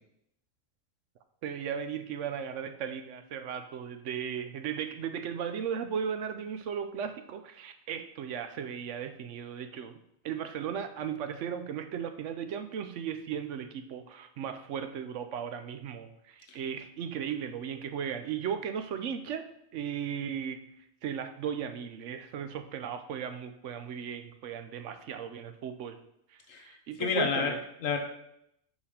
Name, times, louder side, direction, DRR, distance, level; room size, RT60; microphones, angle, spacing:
voice 1, 1.4-10.0 10.2-20.6 21.0-26.0 26.3-27.6, right 7 dB, 70° right, 8 dB, 0.9 m, -36 dB
voice 2, 26.5-28.0, left 5 dB, 75° left, 4 dB, 1.3 m, -31 dB
5.4 x 5.0 x 4.9 m, 0.78 s
omnidirectional pair, 1.4 m